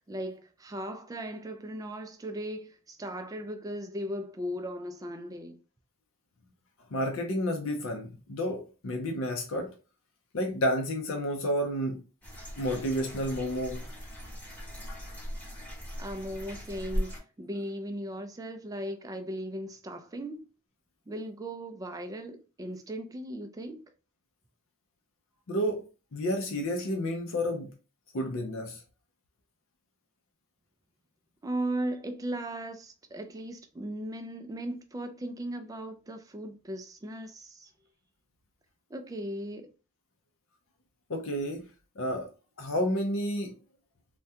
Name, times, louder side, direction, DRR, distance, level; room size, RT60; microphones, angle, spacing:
voice 1, 0.1-5.6 16.0-20.5 21.1-23.8 31.4-37.7 38.9-39.7, right 1 dB, 15° right, 0.3 m, -37 dB
voice 2, 6.9-9.7 10.3-12.0 12.6-13.8 25.5-25.8 26.1-27.7 28.1-28.8 41.1-41.7 42.0-42.3 42.6-43.5, equal, 60° left, 0.5 m, -30 dB
sound 1, 12.2-17.2, equal, 10° left, 0.9 m, -38 dB
3.4 x 2.2 x 2.7 m
head